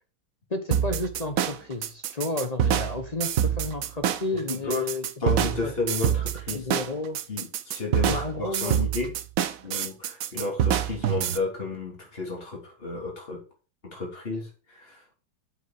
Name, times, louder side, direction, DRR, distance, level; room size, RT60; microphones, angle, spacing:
voice 1, 0.5-5.7 6.5-7.2 8.1-8.8, left 2 dB, 50° left, 6 dB, 0.4 m, -32 dB
sound 1, 0.7-11.4, right 10 dB, 80° right, 0.7 m, -26 dB
voice 2, 4.3-4.9 5.2-6.7 7.3-9.1 9.6-13.4 13.8-15.0, left 3 dB, 25° left, 0 dB, 3.7 m, -32 dB
7.8 x 6.5 x 6.6 m, 0.35 s
omnidirectional pair, 2.4 m